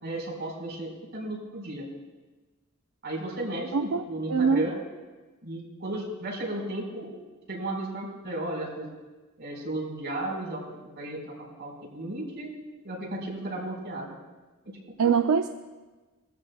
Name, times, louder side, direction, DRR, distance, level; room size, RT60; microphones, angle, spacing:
voice 1, 0.0-1.9 3.0-4.8 5.4-7.1 7.5-8.9 9.4-12.5 12.8-14.1 14.6-15.2, right 1 dB, 55° right, -2 dB, 4.8 m, -34 dB
voice 2, 4.3-4.7 15.0-15.5, right 6 dB, 85° right, 6 dB, 0.5 m, -23 dB
21.0 x 14.0 x 2.3 m, 1.2 s
head